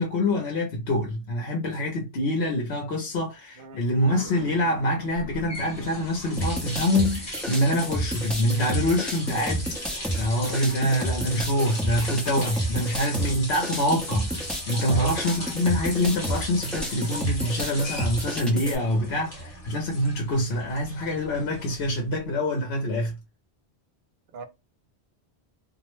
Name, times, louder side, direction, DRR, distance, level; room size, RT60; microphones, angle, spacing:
voice 1, 0.0-14.3 14.7-23.2, left 1 dB, 70° left, 1.0 m, -25 dB
voice 2, 3.6-3.8 14.9-15.2 24.3-24.4, right 5 dB, 60° right, 0.7 m, -38 dB
sound 1, 3.8-11.3, right 1 dB, 25° right, 1.0 m, -47 dB
sound 2, 5.2-22.2, left 1 dB, 35° left, 1.1 m, -38 dB
sound 3, 6.4-18.7, right 1 dB, ahead, 0.5 m, -31 dB
2.5 x 2.1 x 3.0 m
omnidirectional pair, 1.2 m